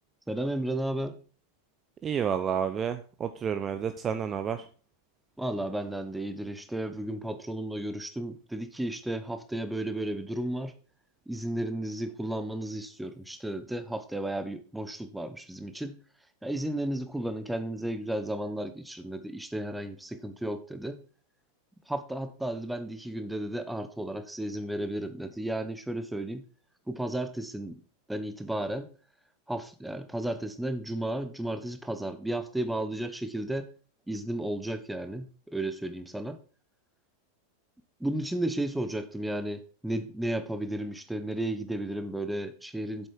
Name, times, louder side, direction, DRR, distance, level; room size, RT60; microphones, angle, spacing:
voice 1, 0.3-1.2 5.4-10.7 11.3-16.0 16.4-21.0 21.9-26.4 26.9-27.8 28.1-28.9 29.5-33.7 34.1-36.4 38.0-43.1, right 1 dB, 5° right, 10 dB, 1.1 m, -33 dB
voice 2, 2.0-4.6, right 7 dB, 25° right, 9 dB, 0.6 m, -30 dB
8.0 x 7.6 x 4.4 m, 0.38 s
figure-of-eight pair, 90°, 0 cm